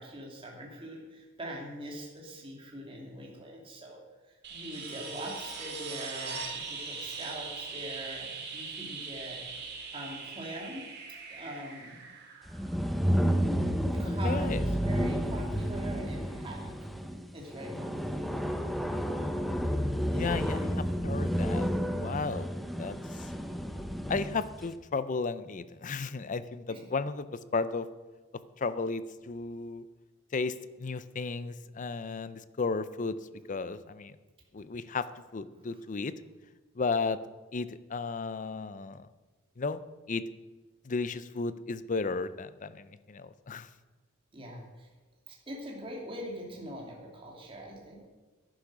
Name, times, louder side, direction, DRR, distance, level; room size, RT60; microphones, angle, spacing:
voice 1, 0.0-4.0 4.5-9.4 9.9-10.8 11.3-12.0 14.0-16.7 17.3-18.6 20.2-20.3 23.1-23.3 26.7-26.8 44.3-44.9 45.3-48.1, right 1 dB, 25° right, -1 dB, 2.6 m, -43 dB
sound 1, 4.4-13.1 15.5-15.6, right 4 dB, 55° right, 2.4 m, -41 dB
sound 2, 12.5-24.5, equal, ahead, 0.7 m, -31 dB
voice 2, 14.0-14.6 20.1-21.7 22.0-22.5 22.8-23.3 24.1-27.9 28.6-29.9 30.3-33.2 33.5-34.2 34.5-35.1 35.3-36.1 36.8-37.2 37.5-39.1 39.6-39.8 40.1-40.2 40.8-43.7, left 4 dB, 40° left, 14 dB, 0.5 m, -34 dB
10.5 x 9.8 x 6.1 m, 1.2 s
head